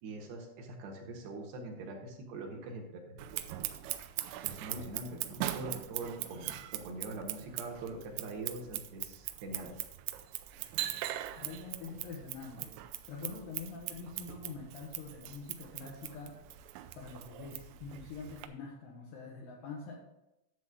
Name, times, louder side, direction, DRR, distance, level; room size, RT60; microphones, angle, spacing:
voice 1, 0.0-3.0 3.3-3.5 4.4-9.8, right 2 dB, 70° right, 1 dB, 2.9 m, -43 dB
Scissors, 3.2-18.5, right 14 dB, 90° right, 3.2 m, -41 dB
voice 2, 11.4-16.4 16.9-19.9, left 4 dB, 70° left, -3 dB, 2.2 m, -45 dB
11.0 x 7.2 x 3.7 m, 0.90 s
omnidirectional pair, 5.6 m